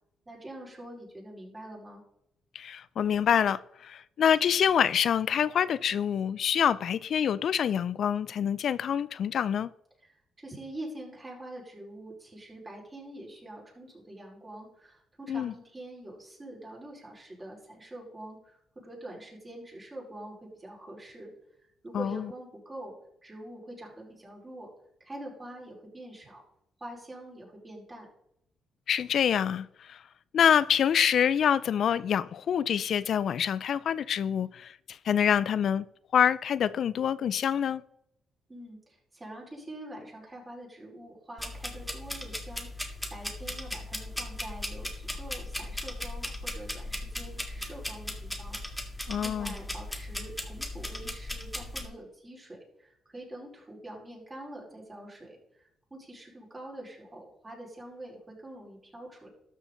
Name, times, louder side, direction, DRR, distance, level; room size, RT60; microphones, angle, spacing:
voice 1, 0.3-2.0 10.0-21.3 21.8-22.9 23.2-24.7 25.0-26.4 26.8-28.1 38.5-48.9 49.2-55.4 55.9-59.3, right 1 dB, 20° right, 4.6 m, -45 dB
voice 2, 2.5-9.7 15.3-15.5 21.9-22.2 28.9-30.0 30.3-35.8 36.1-37.8 49.1-49.5, left 8 dB, 60° left, 0.3 m, -26 dB
sound 1, 41.4-51.8, left 1 dB, 5° left, 1.8 m, -37 dB
13.0 x 6.4 x 3.9 m
cardioid pair, 90°, 0 cm